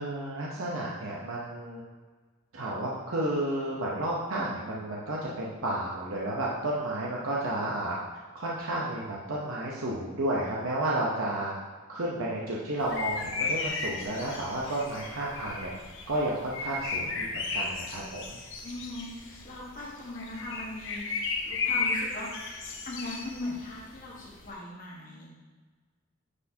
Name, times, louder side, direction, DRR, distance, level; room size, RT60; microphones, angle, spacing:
voice 1, 0.0-1.8 2.5-8.0 8.3-11.5 11.9-15.7 16.1-18.4, right 1 dB, 70° right, -5 dB, 0.9 m, -32 dB
sound 1, 12.8-24.5, left 4 dB, 65° left, 1.0 m, -34 dB
voice 2, 18.6-22.6 22.8-25.3, left 2 dB, 40° left, -3 dB, 1.5 m, -39 dB
9.7 x 4.4 x 2.8 m, 1.4 s
head